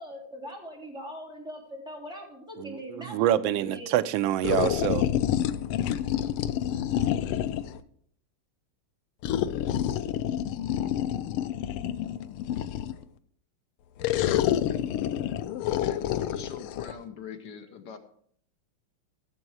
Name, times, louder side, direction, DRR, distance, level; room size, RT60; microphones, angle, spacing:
voice 1, 0.0-4.0, equal, ahead, 2.9 m, -41 dB
voice 2, 2.6-5.1, right 12 dB, 75° right, 1.3 m, -26 dB
sound 1, 4.4-7.8 9.2-13.0 14.0-16.9, left 11 dB, 85° left, 1.5 m, -28 dB
voice 3, 15.7-18.0, left 6 dB, 60° left, 1.4 m, -42 dB
15.0 x 7.0 x 4.7 m
omnidirectional pair, 2.4 m